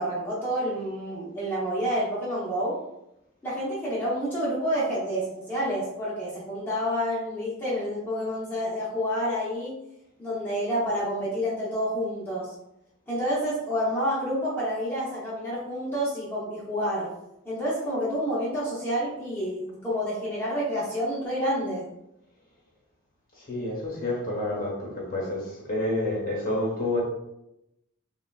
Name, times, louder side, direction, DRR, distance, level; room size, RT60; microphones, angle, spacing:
voice 1, 0.0-2.8 3.4-9.8 10.2-12.5 13.1-17.1 17.4-21.8, equal, 10° left, -9 dB, 0.7 m, -29 dB
voice 2, 23.3-27.0, left 1 dB, 40° left, -3 dB, 0.9 m, -29 dB
3.6 x 2.2 x 2.3 m, 0.86 s
head